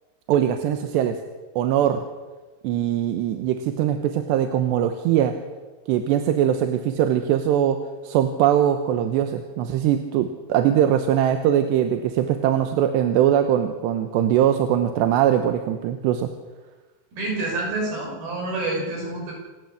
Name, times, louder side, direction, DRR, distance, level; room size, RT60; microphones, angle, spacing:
voice 1, 0.3-1.2 1.6-2.0 2.6-5.3 5.9-7.8 8.0-16.3, right 10 dB, 85° right, 7 dB, 3.2 m, -21 dB
voice 2, 17.1-19.3, right 2 dB, 65° right, -1 dB, 8.4 m, -28 dB
27.5 x 12.5 x 8.4 m, 1.3 s
omnidirectional pair, 4.8 m